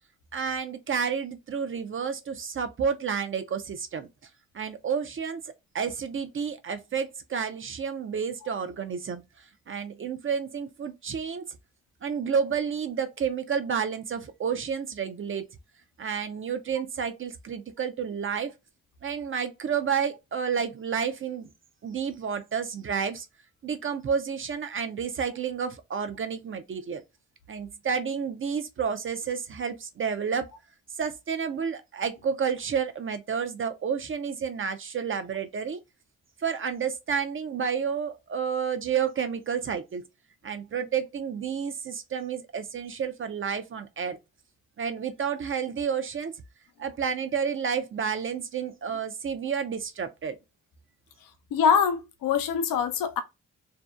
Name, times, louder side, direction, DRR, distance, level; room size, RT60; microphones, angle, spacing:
voice 1, 0.3-4.1 4.5-5.4 5.7-9.2 9.7-11.5 12.0-15.4 16.0-18.5 19.0-21.5 21.8-23.3 23.6-27.0 27.5-30.5 31.0-35.8 36.4-40.0 40.4-44.2 44.8-46.3 46.8-50.4, right 6 dB, 40° right, 0.4 m, -30 dB
voice 2, 51.5-53.2, left 7 dB, 85° left, 0.5 m, -24 dB
2.6 x 2.0 x 2.3 m
cardioid pair, 55°, 32 cm